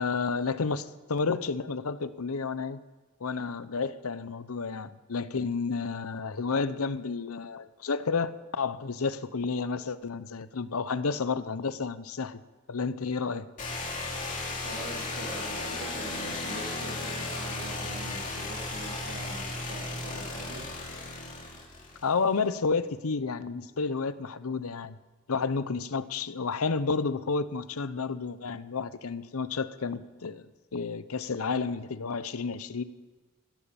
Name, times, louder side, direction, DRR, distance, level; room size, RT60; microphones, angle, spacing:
voice 1, 0.0-2.8 3.2-12.4 12.7-13.5 22.0-25.0 25.3-32.8, left 4 dB, 75° left, 14 dB, 0.7 m, -31 dB
sound 1, 13.6-22.3, left 2 dB, 35° left, 3.2 m, -35 dB
voice 2, 14.6-20.7, right 1 dB, 65° right, -2 dB, 3.4 m, -43 dB
16.5 x 11.5 x 7.0 m, 1.3 s
head